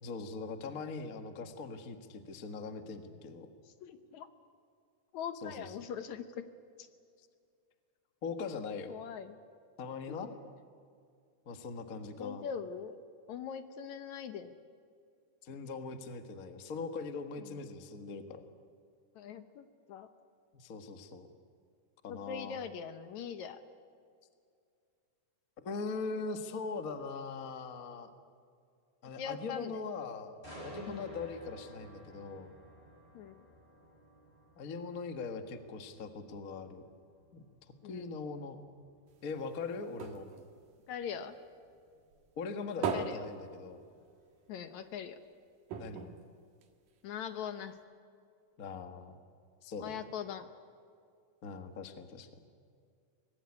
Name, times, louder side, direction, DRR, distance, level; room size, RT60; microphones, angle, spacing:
voice 1, 0.0-3.5 5.4-5.7 8.2-8.9 9.8-10.3 11.4-12.4 15.4-18.4 20.5-21.3 22.0-22.6 25.6-28.1 29.0-30.3 30.6-32.5 34.6-36.9 37.3-37.4 37.8-38.6 39.2-40.3 42.4-43.8 45.8-46.2 48.6-49.2 49.6-50.0 51.4-52.3, left 4 dB, 40° left, 7 dB, 1.3 m, -41 dB
voice 2, 3.6-4.3 5.1-6.4 6.8-6.9 8.9-9.4 10.1-10.4 12.2-13.0 13.3-14.6 17.4-17.6 19.2-20.1 22.1-23.6 29.2-29.8 30.9-31.1 33.1-33.5 37.8-38.1 40.9-41.4 42.9-43.3 44.5-45.2 47.0-47.8 49.8-50.5, left 7 dB, 70° left, 10 dB, 2.2 m, -41 dB
sound 1, 30.4-44.3 44.7-44.9, equal, 15° left, 7.4 m, -55 dB
sound 2, 39.1-41.7 42.1-44.4 44.7-44.8 45.1-45.2 45.7-47.2 47.8-47.9, right 6 dB, 85° right, 3.4 m, -40 dB
24.5 x 20.0 x 9.8 m, 2.3 s
omnidirectional pair, 3.7 m